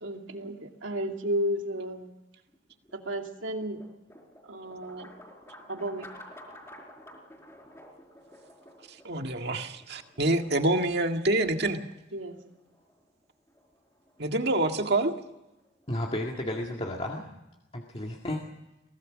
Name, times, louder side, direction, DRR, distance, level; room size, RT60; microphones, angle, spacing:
voice 1, 0.0-2.1 2.9-3.8 4.5-5.1 5.7-6.1 12.1-12.4, equal, 85° right, 3 dB, 2.6 m, -33 dB
sound 1, 2.5-16.6, left 1 dB, 15° left, 4.6 m, -53 dB
voice 2, 8.9-11.8 14.2-15.1, right 2 dB, 60° right, 5 dB, 1.9 m, -26 dB
voice 3, 15.9-17.3 17.7-18.4, left 1 dB, 30° left, 0 dB, 2.0 m, -32 dB
23.0 x 17.5 x 6.3 m, 0.96 s
head